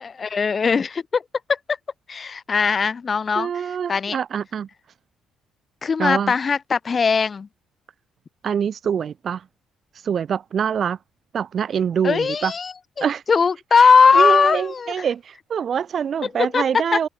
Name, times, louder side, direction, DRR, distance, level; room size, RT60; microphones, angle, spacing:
voice 1, 0.0-1.2 2.1-3.5 3.9-4.2 5.8-7.5 12.0-12.7 13.0-14.9 16.4-16.6, left 5 dB, 40° left, 0.7 m, -19 dB
voice 2, 3.3-4.7 6.0-6.4 8.4-9.4 10.0-11.0 11.3-12.5 13.0-13.2 13.7-17.1, right 7 dB, 55° right, 2.5 m, -25 dB
hypercardioid pair, 55°, 0 cm